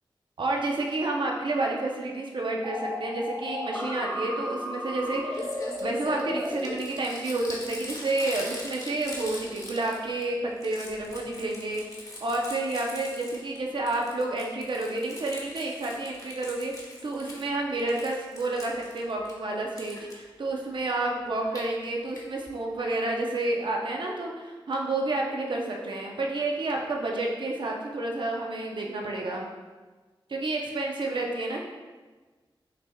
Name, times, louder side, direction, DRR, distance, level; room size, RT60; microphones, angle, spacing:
voice 1, 0.4-5.5 5.8-29.5 30.3-31.6, right 2 dB, 60° right, -1 dB, 0.6 m, -30 dB
sound 1, 2.6-6.5, left 1 dB, 5° left, 0.8 m, -34 dB
Crumpling crinkling, 5.0-5.1 5.3-10.2 10.5-13.6 13.9-17.5 17.8-19.3 19.8-20.1 21.3-21.6 22.2-22.3 22.5-22.6 22.8-22.9, left 1 dB, 40° left, 1.0 m, -42 dB
5.7 x 3.4 x 2.3 m, 1.3 s
wide cardioid pair, 70°, 9 cm